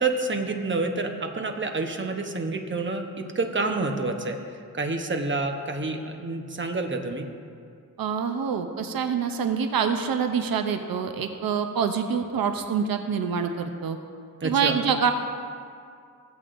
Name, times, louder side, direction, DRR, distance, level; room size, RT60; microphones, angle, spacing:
voice 1, 0.0-4.4 4.7-7.3 14.4-14.8, right 3 dB, 35° right, 4 dB, 0.9 m, -28 dB
voice 2, 8.0-14.0 14.4-15.1, right 6 dB, 90° right, 7 dB, 0.6 m, -26 dB
16.0 x 8.1 x 2.5 m, 2.3 s
wide cardioid pair, 95°, 34 cm